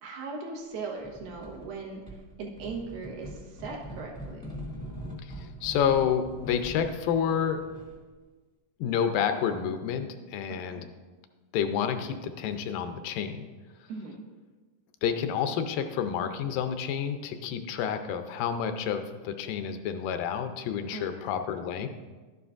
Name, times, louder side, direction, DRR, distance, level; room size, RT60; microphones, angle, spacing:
voice 1, 0.0-4.5 10.6-10.9 13.9-14.2 20.9-21.4, right 4 dB, 90° right, -1 dB, 3.1 m, -39 dB
sound 1, 1.0-1.7 2.1-8.1, equal, 5° right, 0.6 m, -42 dB
voice 2, 5.2-7.6 8.8-10.9 11.5-13.5 15.0-21.9, left 8 dB, 80° left, 8 dB, 2.1 m, -29 dB
11.5 x 9.4 x 2.5 m, 1.3 s
omnidirectional pair, 4.0 m